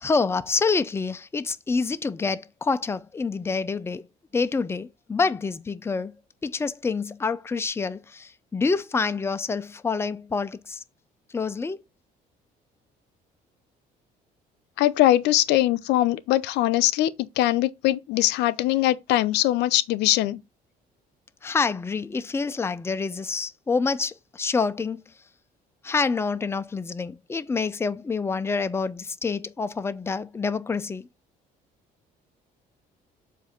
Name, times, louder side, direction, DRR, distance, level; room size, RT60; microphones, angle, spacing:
voice 1, 0.0-4.1 4.3-6.1 6.4-10.8 11.3-11.8 21.4-25.0 25.8-31.1, left 4 dB, 15° left, 0.5 m, -27 dB
voice 2, 14.8-20.4, left 15 dB, 85° left, 0.6 m, -22 dB
7.3 x 2.6 x 5.8 m
cardioid pair, 110°, 17 cm